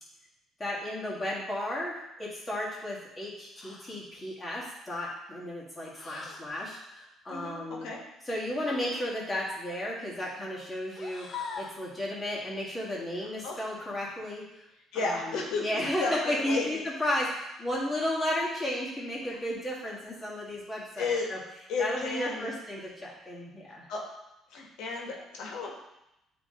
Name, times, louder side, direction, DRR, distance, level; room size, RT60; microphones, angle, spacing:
voice 1, 0.6-7.9 8.3-14.4 14.9-21.4 21.8-23.9, left 1 dB, 15° left, -5 dB, 1.8 m, -34 dB
sound 1, 3.6-4.0 5.9-6.5 8.6-9.1 10.9-11.9 13.5-13.7 15.8-16.3 17.7-18.2, left 5 dB, 40° left, 0.7 m, -43 dB
voice 2, 7.3-8.0 13.4-13.5 14.9-16.6 21.0-21.3 21.7-22.5 23.9-24.0 24.5-25.7, left 4 dB, 85° left, -1 dB, 1.3 m, -33 dB
8.6 x 3.0 x 3.8 m, 0.88 s
cardioid pair, 125°, 0 cm